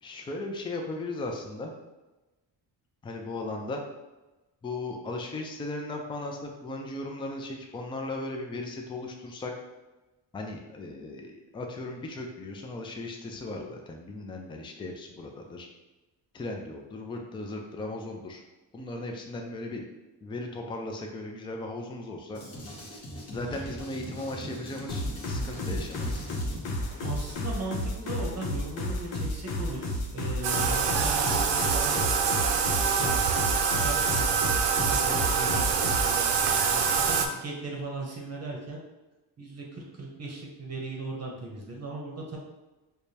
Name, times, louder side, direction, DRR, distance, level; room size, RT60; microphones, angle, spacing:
voice 1, 0.0-1.7 3.0-3.8 4.6-9.5 10.3-15.7 16.3-18.4 18.7-19.8 20.2-22.4 23.3-26.2 36.7-37.1, left 2 dB, 15° left, 2 dB, 0.3 m, -37 dB
Drum kit, 22.3-27.3, equal, 35° left, 0.9 m, -41 dB
sound 1, 24.9-36.1, left 1 dB, 80° left, 0.9 m, -32 dB
voice 2, 27.0-32.3 32.9-33.2 33.6-36.3 36.7-38.8 39.4-42.4, right 2 dB, 35° right, -1 dB, 0.8 m, -38 dB
Bathtub (filling or washing), 30.4-37.3, right 6 dB, 70° right, 0.6 m, -25 dB
4.8 x 2.2 x 2.7 m, 1.1 s
cardioid pair, 125°, 45 cm